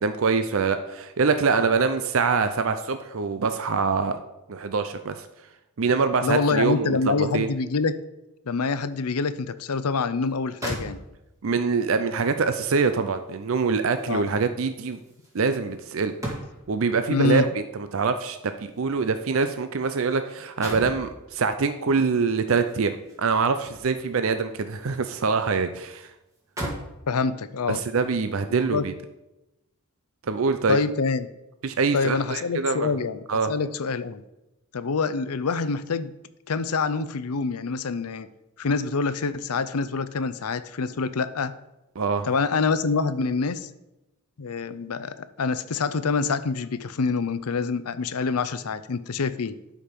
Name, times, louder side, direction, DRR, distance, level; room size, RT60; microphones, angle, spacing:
voice 1, 0.0-4.2 4.5-5.3 5.8-7.5 11.4-15.0 15.3-16.1 16.7-26.1 27.7-28.9 30.3-30.8 31.6-32.9 33.3-33.5 42.0-42.3, right 4 dB, 65° right, 9 dB, 0.5 m, -24 dB
voice 2, 6.2-8.0 8.5-11.0 14.1-14.3 17.1-17.5 27.1-27.8 28.5-28.9 30.7-31.3 31.9-33.2 33.5-34.2 34.7-36.1 36.5-38.3 38.6-41.5 42.2-43.7 44.4-49.5, left 4 dB, 85° left, 14 dB, 0.6 m, -26 dB
sound 1, 10.2-10.3 10.6-11.5 12.9-16.8 17.9-20.1 20.3-21.1 22.6-24.1 24.6-25.5 25.8-25.9 26.3-27.0 27.7-27.9, right 1 dB, 15° right, 2.0 m, -38 dB
12.0 x 5.2 x 5.2 m, 0.95 s
head